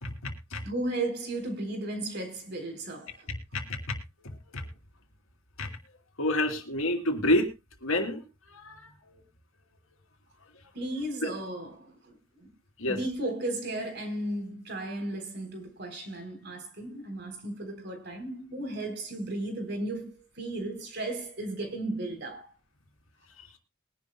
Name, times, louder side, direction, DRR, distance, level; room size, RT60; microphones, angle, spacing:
voice 1, 0.0-0.6 3.3-4.7 5.6-5.7 6.2-7.5 7.8-8.2 8.5-9.2 11.2-11.3 12.8-13.0 23.4-23.5, left 1 dB, 85° left, 2.8 m, -30 dB
voice 2, 0.6-3.3 10.7-12.5 12.9-22.5, right 1 dB, 50° right, 3.8 m, -35 dB
22.0 x 11.0 x 2.2 m
head